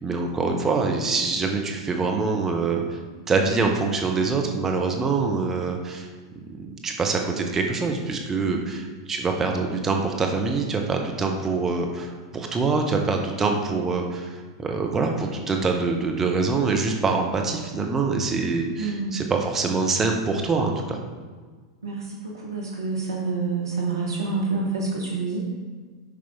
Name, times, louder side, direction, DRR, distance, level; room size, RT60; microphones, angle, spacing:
voice 1, 0.0-3.0 3.3-6.1 6.6-21.0, right 4 dB, 15° right, 2 dB, 0.7 m, -25 dB
voice 2, 18.8-19.2 21.8-25.4, right 4 dB, 70° right, -3 dB, 1.0 m, -28 dB
7.1 x 5.1 x 3.5 m, 1.5 s
figure-of-eight pair, 90°, 2 cm